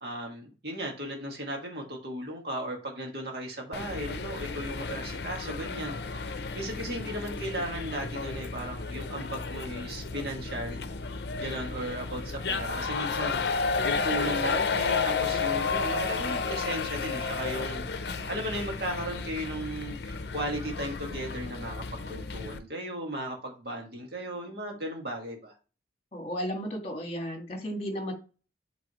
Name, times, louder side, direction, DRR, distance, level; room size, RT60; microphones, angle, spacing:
voice 1, 0.0-10.8 11.4-25.5, right 1 dB, 60° right, 0 dB, 1.9 m, -36 dB
sound 1, 3.7-22.6, left 4 dB, 65° left, 0.6 m, -32 dB
voice 2, 26.1-28.1, equal, 35° left, 3 dB, 1.6 m, -34 dB
7.9 x 3.9 x 3.1 m, 0.34 s
head